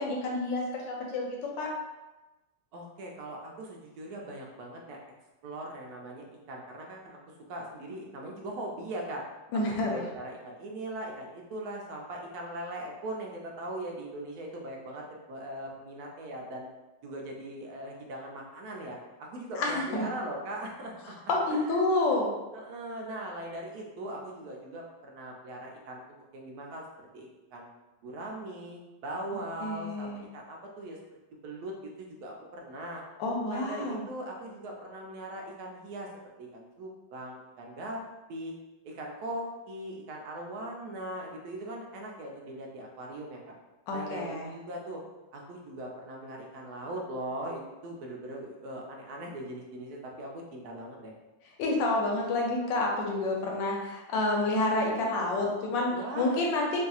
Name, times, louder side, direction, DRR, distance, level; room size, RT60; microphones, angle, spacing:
voice 1, 0.0-1.7 9.5-10.0 19.6-20.1 21.0-22.3 29.6-30.2 33.2-34.0 43.9-44.5 51.6-56.9, left 2 dB, 85° left, -1 dB, 1.3 m, -29 dB
voice 2, 2.7-5.0 5.4-7.2 7.5-9.2 9.8-16.6 17.0-21.2 21.5-21.8 22.5-26.0 26.3-26.8 27.1-27.7 28.0-31.0 31.4-33.0 33.4-36.1 36.4-38.0 38.3-38.5 38.8-43.4 43.9-45.0 45.3-51.1 55.9-56.4, right 1 dB, 70° right, -1 dB, 0.9 m, -40 dB
3.1 x 2.6 x 2.3 m, 1.1 s
omnidirectional pair, 2.0 m